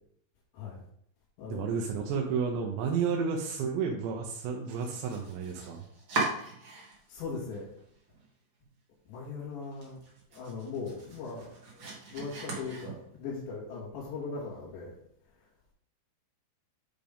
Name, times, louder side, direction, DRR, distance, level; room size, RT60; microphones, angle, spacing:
voice 1, 1.5-5.8, right 6 dB, 85° right, 1 dB, 2.9 m, -31 dB
Domestic sounds home sounds, 4.6-7.2 7.5-8.3 8.6-8.7 9.1-9.2 9.6-13.3, right 3 dB, 55° right, 1.3 m, -39 dB
voice 2, 7.1-7.7 9.1-10.0 10.3-14.9, left 4 dB, 90° left, -7 dB, 4.0 m, -39 dB
9.2 x 5.1 x 3.5 m, 0.69 s
omnidirectional pair, 5.0 m